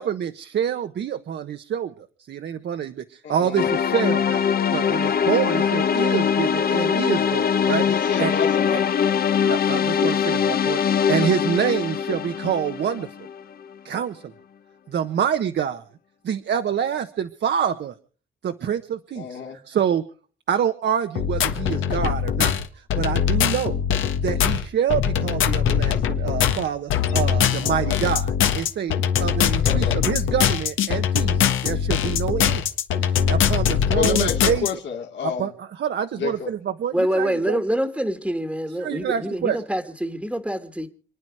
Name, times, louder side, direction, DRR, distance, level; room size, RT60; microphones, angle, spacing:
voice 1, 0.0-1.9 2.3-4.4 4.7-7.8 8.2-8.3 8.7-8.8 9.4-10.8 11.1-13.3 13.8-14.3 14.9-15.8 16.2-17.9 18.4-20.0 20.5-23.8 24.2-32.6 33.0-34.7 35.2-37.6 38.8-39.6, right 8 dB, 60° right, 1.2 m, -26 dB
voice 2, 3.2-3.7 7.7-9.0 19.2-19.6 27.6-28.0 29.6-30.1 33.9-35.5 36.1-36.5, left 7 dB, 65° left, 2.5 m, -30 dB
sound 1, 3.6-13.5, left 7 dB, 50° left, 1.0 m, -22 dB
sound 2, 21.2-34.7, left 8 dB, 80° left, 1.5 m, -22 dB
voice 3, 36.9-40.9, equal, 5° right, 1.6 m, -25 dB
28.0 x 9.6 x 4.8 m
cardioid pair, 90°, 20 cm